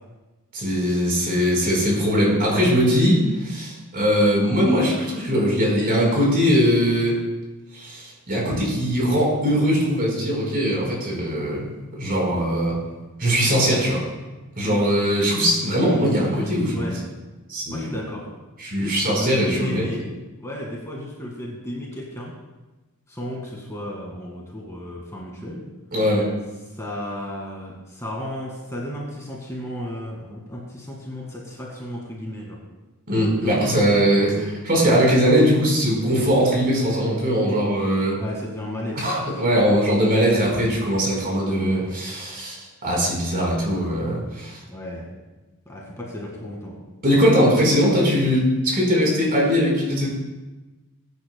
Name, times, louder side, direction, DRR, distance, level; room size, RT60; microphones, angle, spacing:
voice 1, 0.5-7.2 7.7-11.6 12.0-12.8 13.2-14.0 14.6-16.9 17.5-17.9 18.6-19.8 25.9-26.3 33.1-38.2 39.0-44.6 47.0-50.1, equal, 40° right, -3 dB, 4.4 m, -20 dB
voice 2, 16.3-17.0 17.7-18.3 18.7-20.0 20.4-22.3 23.1-25.6 26.6-32.6 33.4-33.9 38.2-39.0 44.7-45.1 45.7-46.7, left 1 dB, 15° left, -3 dB, 1.9 m, -33 dB
20.0 x 9.8 x 2.2 m, 1.1 s
head